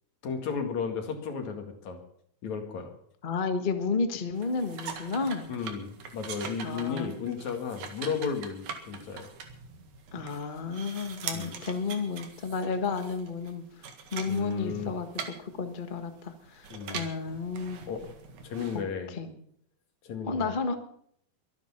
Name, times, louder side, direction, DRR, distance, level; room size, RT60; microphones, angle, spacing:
voice 1, 0.2-2.0 2.4-2.9 5.5-9.3 11.3-11.5 14.3-14.9 16.7-17.1 17.9-18.1 18.4-19.1 20.0-20.5, left 6 dB, 70° left, 5 dB, 3.4 m, -34 dB
voice 2, 3.2-5.5 6.6-7.1 10.1-15.1 15.4-16.7 16.9-17.8 18.7-18.8 19.1-19.3 20.2-20.7, left 4 dB, 50° left, 7 dB, 0.5 m, -32 dB
sound 1, 4.3-18.8, right 6 dB, 75° right, 3.3 m, -43 dB
23.0 x 9.8 x 5.7 m, 0.67 s
omnidirectional pair, 3.5 m